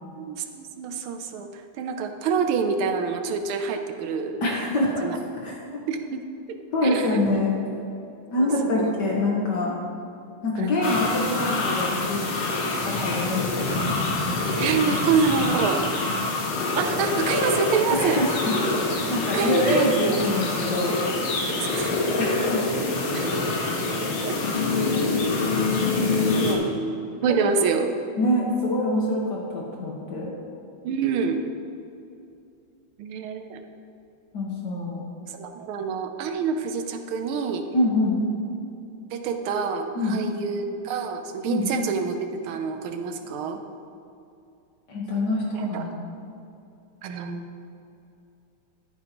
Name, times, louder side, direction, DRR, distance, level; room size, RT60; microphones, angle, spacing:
voice 1, 0.2-4.4 5.0-5.2 5.9-6.2 6.5-7.2 8.4-8.9 10.6-11.0 14.6-15.8 16.7-18.3 19.2-20.2 21.5-21.9 23.1-23.3 24.3-24.4 26.0-26.1 26.4-26.6 27.2-28.0 30.8-31.4 33.0-33.6 35.3-37.7 39.1-43.6 45.5-45.8 47.0-47.4, right 5 dB, 80° right, 6 dB, 1.5 m, -27 dB
voice 2, 4.4-5.0 5.4-5.8 6.7-7.5 8.3-9.7 10.4-12.2 12.8-14.0 17.9-18.3 18.8-21.0 22.2-22.6 27.2-27.3 28.2-30.3 34.3-35.0 37.7-38.2 39.9-40.2 41.5-41.7 44.9-46.1, left 1 dB, 60° left, -3 dB, 1.6 m, -25 dB
sound 1, 10.8-26.5, left 3 dB, 75° left, 2.1 m, -26 dB
13.5 x 8.8 x 3.0 m, 2.6 s
omnidirectional pair, 2.3 m